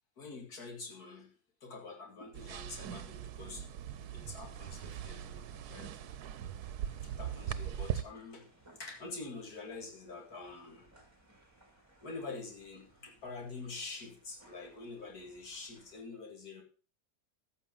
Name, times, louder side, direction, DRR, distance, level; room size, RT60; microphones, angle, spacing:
voice 1, 0.2-1.3 1.6-3.6 4.1-6.0 7.0-8.5 8.8-10.9 12.0-16.6, left 3 dB, 75° left, 1 dB, 2.8 m, -46 dB
sound 1, 2.3-8.0, right 10 dB, 85° right, 1.2 m, -40 dB
sound 2, 4.7-16.0, right 2 dB, 10° right, 2.9 m, -63 dB
14.5 x 6.5 x 5.3 m, 0.38 s
omnidirectional pair, 1.6 m